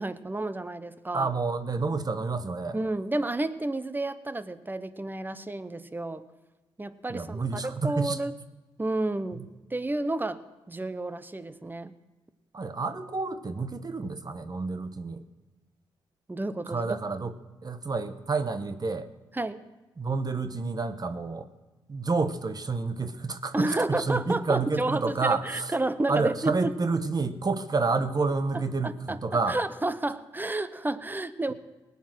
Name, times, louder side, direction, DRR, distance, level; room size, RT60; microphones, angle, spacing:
voice 1, 0.0-1.3 2.7-6.2 6.8-8.3 8.8-9.4 9.7-10.4 10.7-11.9 16.3-17.0 19.3-19.6 23.5-26.7 28.5-29.2 29.5-31.5, right 2 dB, 20° right, 14 dB, 0.9 m, -31 dB
voice 2, 1.1-2.8 7.1-8.2 12.5-15.2 16.7-19.1 20.0-21.5 21.9-25.7 26.1-29.6, right 4 dB, 35° right, 10 dB, 1.1 m, -29 dB
19.0 x 8.5 x 6.3 m, 1.2 s
supercardioid pair, 45°, 11 cm